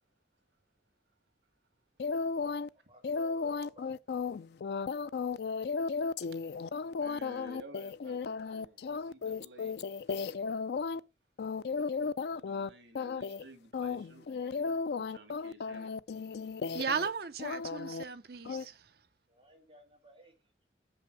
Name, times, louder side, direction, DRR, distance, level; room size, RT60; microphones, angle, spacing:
sound 1, 2.0-2.7 3.0-11.0 11.4-12.7 13.0-13.4 13.7-17.1 17.4-18.0 18.5-18.6, left 5 dB, 60° left, 0.4 m, -35 dB
voice 1, 2.7-3.9 19.3-20.7, right 2 dB, 30° right, 2.7 m, -57 dB
voice 2, 6.9-9.8 10.1-10.2 12.3-15.9, right 2 dB, 80° right, 2.0 m, -54 dB
voice 3, 16.7-18.8, right 6 dB, 55° right, 0.7 m, -36 dB
6.7 x 5.6 x 6.3 m
head